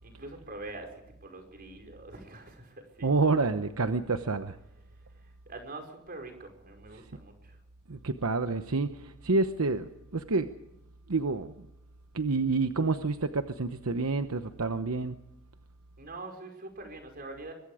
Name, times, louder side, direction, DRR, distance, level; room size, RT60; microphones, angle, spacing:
voice 1, 0.0-3.1 4.9-7.6 16.0-17.5, right 2 dB, 45° right, 4 dB, 5.3 m, -44 dB
voice 2, 3.0-4.6 7.9-10.5 11.1-11.5 12.1-15.2, right 3 dB, 75° right, 9 dB, 0.9 m, -28 dB
24.5 x 22.0 x 5.0 m, 0.90 s
head